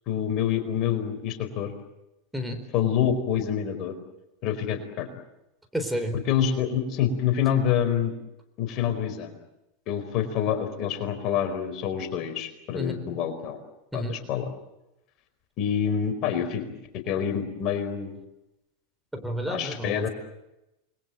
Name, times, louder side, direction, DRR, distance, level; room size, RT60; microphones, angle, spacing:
voice 1, 0.1-1.7 2.7-4.0 4.4-5.1 6.1-8.1 8.6-9.3 9.9-13.6 13.9-14.5 15.6-18.1 19.5-20.1, left 9 dB, 45° left, 8 dB, 4.5 m, -27 dB
voice 2, 5.7-6.2 12.7-13.0 13.9-14.2 19.1-20.1, equal, 5° right, 5 dB, 4.2 m, -30 dB
28.5 x 22.0 x 7.8 m, 0.94 s
figure-of-eight pair, 90°, 0 cm